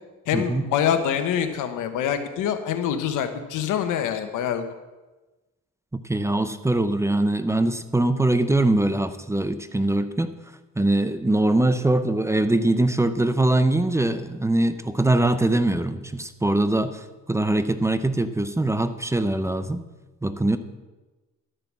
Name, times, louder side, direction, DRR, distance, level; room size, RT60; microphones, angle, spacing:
voice 1, 0.3-4.6, left 9 dB, 90° left, 8 dB, 1.2 m, -25 dB
voice 2, 5.9-10.4 10.8-19.8 20.2-20.6, right 2 dB, 10° right, 11 dB, 0.7 m, -22 dB
12.0 x 6.8 x 7.4 m, 1.2 s
cardioid pair, 90°, 30 cm